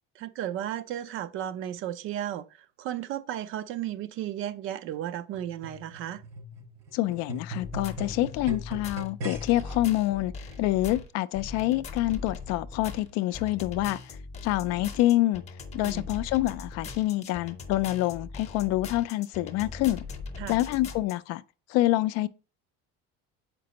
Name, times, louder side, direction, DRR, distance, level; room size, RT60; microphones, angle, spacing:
voice 1, 0.2-6.2 15.8-16.1 20.4-20.6, right 11 dB, 45° right, 0.5 m, -34 dB
sound 1, 5.3-9.7 10.5-10.6, right 1 dB, 90° right, 3.3 m, -39 dB
voice 2, 6.9-10.3 10.6-14.0 14.4-15.4 15.7-20.0 20.5-21.4 21.7-22.3, left 16 dB, 60° left, 0.4 m, -26 dB
sound 2, 7.6-21.1, left 4 dB, 25° left, 0.7 m, -40 dB
7.5 x 5.2 x 2.9 m
cardioid pair, 165°, 29 cm